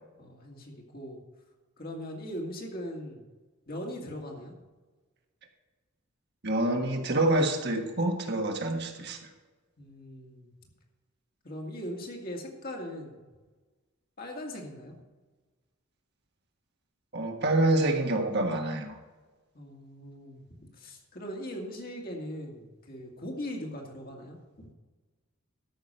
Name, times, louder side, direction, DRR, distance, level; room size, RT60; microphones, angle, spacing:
voice 1, 0.2-1.2 1.8-3.2 3.7-4.5 9.8-10.5 11.4-13.3 14.2-14.9 19.5-24.7, equal, 40° left, 1 dB, 2.1 m, -40 dB
voice 2, 6.4-9.2 17.1-19.0, right 2 dB, 50° right, 3 dB, 1.4 m, -27 dB
13.0 x 6.0 x 6.8 m, 1.3 s
head